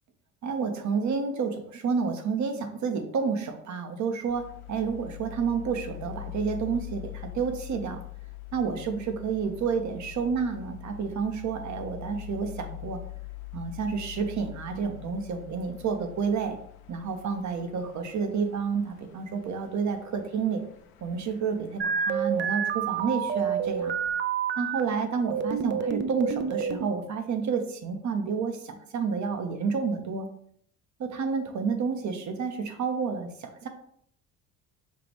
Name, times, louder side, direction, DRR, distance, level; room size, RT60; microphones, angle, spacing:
voice 1, 0.4-8.0 8.5-13.0 13.5-16.6 16.9-20.6 21.0-23.9 24.6-30.3 31.0-33.7, right 5 dB, 50° right, 6 dB, 0.9 m, -30 dB
sound 1, 4.3-24.2, left 18 dB, 75° left, 0.7 m, -44 dB
sound 2, 21.8-24.8 25.3-26.9, right 7 dB, 30° right, 0.4 m, -28 dB
5.7 x 2.4 x 3.4 m, 0.66 s
supercardioid pair, 70°, 37 cm